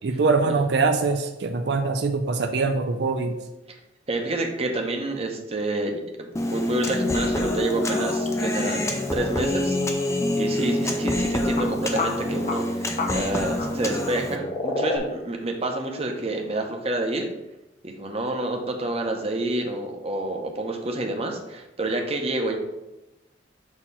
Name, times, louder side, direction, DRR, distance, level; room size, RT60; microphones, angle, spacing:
voice 1, 0.0-3.4, right 4 dB, 60° right, 6 dB, 0.4 m, -23 dB
voice 2, 4.1-17.3 17.8-22.6, right 2 dB, 30° right, 2 dB, 0.8 m, -28 dB
Human voice, 6.4-14.4, left 1 dB, 15° left, 0.5 m, -26 dB
sound 1, 8.1-8.3 9.0-9.1 11.6-11.7 12.0-12.1 12.5-12.6 13.0-13.1 13.6-13.7 14.3-15.0, left 2 dB, 40° left, 0.8 m, -27 dB
6.3 x 2.9 x 5.5 m, 0.97 s
head